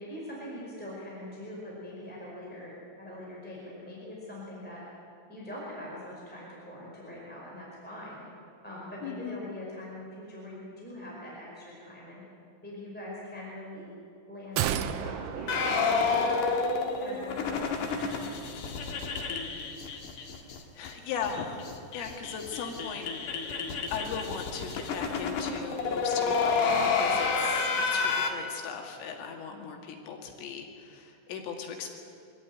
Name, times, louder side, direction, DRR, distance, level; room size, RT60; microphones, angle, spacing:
voice 1, 0.0-2.7 3.0-4.8 5.3-12.2 12.6-13.9 14.3-16.6 17.0-18.3 29.5-29.7, left 1 dB, ahead, -5 dB, 4.3 m, -43 dB
voice 2, 9.0-9.4 20.4-21.7 21.9-23.1 23.9-31.9, left 6 dB, 90° left, 2 dB, 4.6 m, -38 dB
sound 1, 14.6-16.9 17.2-17.3, right 10 dB, 80° right, 2.5 m, -33 dB
sound 2, 15.5-20.6 20.8-20.9 21.2-21.3 21.6-28.3, left 4 dB, 60° left, 2.4 m, -29 dB
24.5 x 14.0 x 9.4 m, 2.5 s
omnidirectional pair, 5.6 m